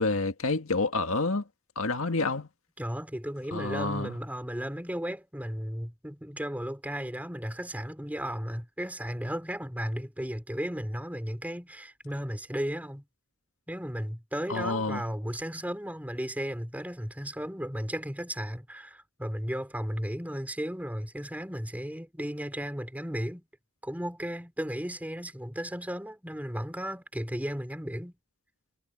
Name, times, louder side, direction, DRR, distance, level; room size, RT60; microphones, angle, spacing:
voice 1, 0.0-1.4 1.8-2.5 3.5-4.1 14.5-15.0, left 3 dB, 75° left, 1.8 m, -28 dB
voice 2, 2.8-13.0 13.7-23.4 23.8-28.2, equal, 5° right, 3.9 m, -35 dB
head